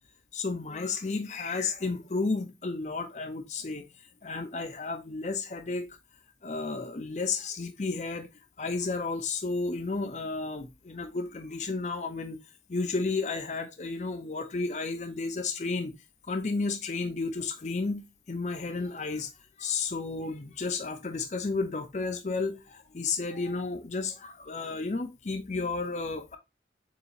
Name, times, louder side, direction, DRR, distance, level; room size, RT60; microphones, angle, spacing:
voice 1, 0.3-3.9 4.2-6.0 6.4-8.3 8.6-12.4 12.7-15.9 16.3-18.0 18.3-19.3 19.6-26.4, left 3 dB, 40° left, 0.5 m, -32 dB
6.9 x 2.9 x 2.4 m
head